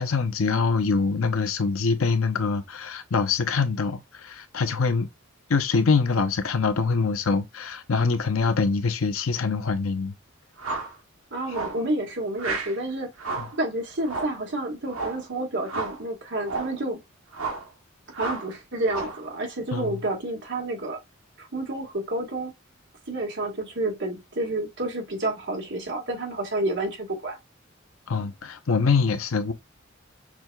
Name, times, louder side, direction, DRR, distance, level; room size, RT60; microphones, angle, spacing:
voice 1, 0.0-5.1 5.5-10.1 13.4-13.5 19.7-20.0 28.1-29.5, left 4 dB, 85° left, 0.7 m, -24 dB
sound 1, 10.6-11.0 11.5-11.8 12.4-12.8 13.2-13.6 14.0-14.4 14.9-15.2 15.7-16.0 16.4-16.8 17.3-17.7 18.1-18.5 18.9-19.2, right 3 dB, 80° right, 1.0 m, -32 dB
voice 2, 11.3-13.1 13.6-17.0 18.2-21.0 21.4-22.5 23.1-27.4, right 2 dB, 60° right, 1.6 m, -29 dB
6.0 x 2.8 x 2.3 m
head